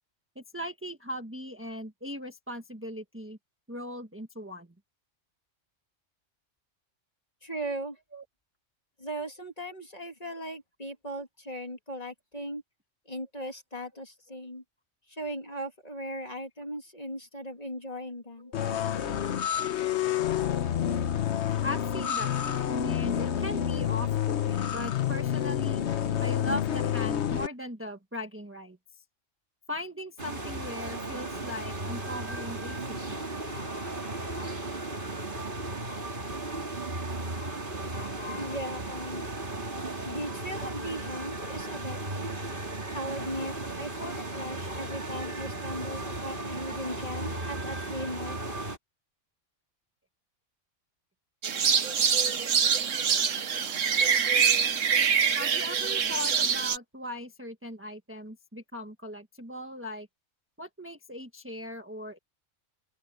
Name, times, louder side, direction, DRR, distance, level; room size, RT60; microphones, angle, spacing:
voice 1, 0.3-3.4 3.7-4.7 8.1-8.2 18.4-18.5 21.6-25.8 26.2-28.8 29.7-32.8 33.1-33.2 55.4-60.1 60.6-62.2, left 1 dB, 10° right, 1.4 m, -39 dB
voice 2, 7.4-8.0 9.0-12.6 13.1-14.6 15.1-18.5 38.4-39.3 40.0-42.4 42.9-48.6, right 1 dB, 30° left, 2.9 m, -38 dB
sound 1, 18.5-27.5, left 9 dB, 65° left, 1.1 m, -28 dB
sound 2, 30.2-48.8, right 2 dB, 40° right, 2.9 m, -36 dB
sound 3, 51.4-56.8, right 7 dB, 80° right, 1.5 m, -25 dB
open air
omnidirectional pair, 1.3 m